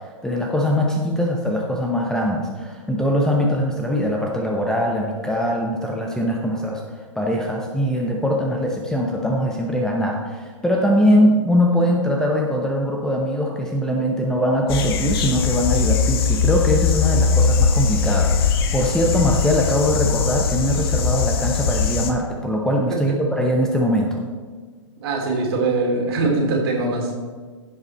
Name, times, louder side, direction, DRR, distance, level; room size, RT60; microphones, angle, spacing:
voice 1, 0.2-24.2, equal, 5° left, 0 dB, 0.9 m, -21 dB
sound 1, 14.7-22.1, left 5 dB, 45° left, 1.1 m, -20 dB
voice 2, 25.0-27.1, right 3 dB, 50° right, 0 dB, 2.7 m, -22 dB
15.5 x 5.4 x 4.2 m, 1.5 s
figure-of-eight pair, 115°, 17 cm